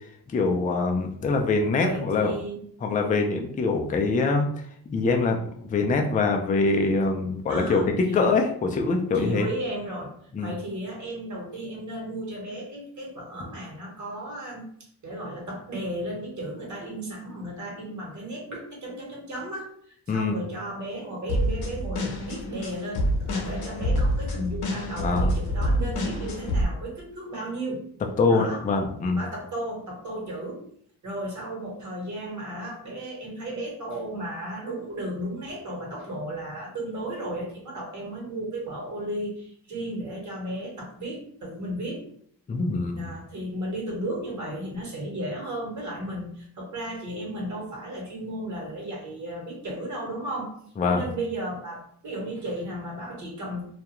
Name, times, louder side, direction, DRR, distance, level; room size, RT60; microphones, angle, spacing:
voice 1, 0.3-2.3 2.8-4.5 4.9-5.4 5.7-7.8 8.1-9.5 10.3-10.5 20.1-20.4 25.0-25.3 28.2-29.2 42.5-43.1 50.8-51.0, left 3 dB, 20° left, 2 dB, 0.3 m, -24 dB
voice 2, 1.8-2.6 7.5-8.4 9.1-14.6 15.0-27.8 28.3-28.6 29.1-30.6 31.0-42.0 43.0-50.6 50.9-53.6, right 1 dB, 45° right, -2 dB, 1.1 m, -34 dB
sound 1, 21.3-26.6, equal, 65° left, 0.7 m, -27 dB
2.4 x 2.2 x 2.9 m, 0.64 s
cardioid pair, 100°, 41 cm